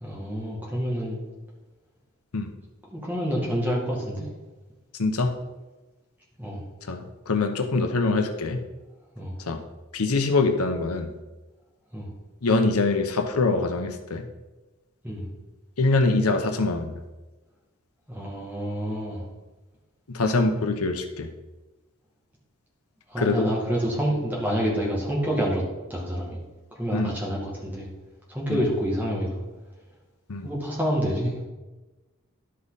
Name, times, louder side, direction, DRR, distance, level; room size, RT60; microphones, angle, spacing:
voice 1, 0.0-1.2 2.9-4.3 6.4-6.6 9.2-9.3 11.9-12.1 15.0-15.2 18.1-19.2 23.1-25.6 25.9-26.4 26.8-27.9 28.3-29.4 30.4-31.4, equal, 10° right, -4 dB, 1.9 m, -27 dB
voice 2, 5.0-5.3 6.9-8.6 9.5-9.6 9.9-11.1 12.4-14.2 15.8-16.9 20.1-21.3 23.2-23.5 26.9-27.1 28.5-28.6 30.3-30.5, left 3 dB, 90° left, 6 dB, 0.8 m, -24 dB
11.0 x 5.5 x 4.1 m, 1.1 s
head